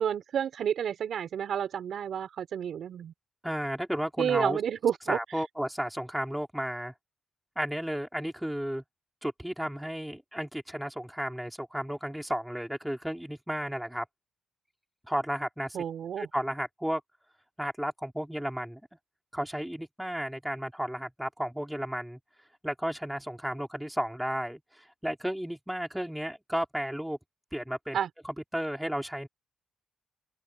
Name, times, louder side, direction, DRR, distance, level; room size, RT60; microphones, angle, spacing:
voice 1, 0.0-3.1 4.2-5.2 15.7-16.3 27.9-28.1, right 8 dB, 70° right, 4.0 m, -30 dB
voice 2, 3.4-4.6 5.1-6.9 7.6-8.8 9.2-14.0 15.1-15.8 16.2-17.0 17.6-18.8 19.3-22.2 22.6-27.2 27.5-28.0 28.2-29.3, equal, 5° right, 4.5 m, -33 dB
open air
cardioid pair, 75°, 0 cm